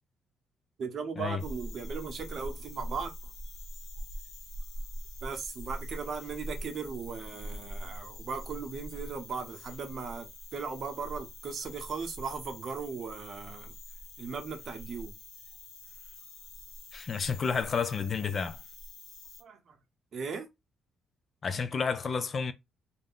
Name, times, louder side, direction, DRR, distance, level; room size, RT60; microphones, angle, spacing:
voice 1, 0.8-3.1 5.2-10.3 10.5-13.7 14.2-15.1 19.4-19.8 20.1-20.5, right 5 dB, 55° right, 0.7 m, -37 dB
sound 1, 1.4-19.4, equal, 85° left, 1.0 m, -44 dB
voice 2, 16.9-18.6 21.4-22.5, left 5 dB, 40° left, 0.4 m, -30 dB
2.4 x 2.1 x 3.6 m
cardioid pair, 95°, 0 cm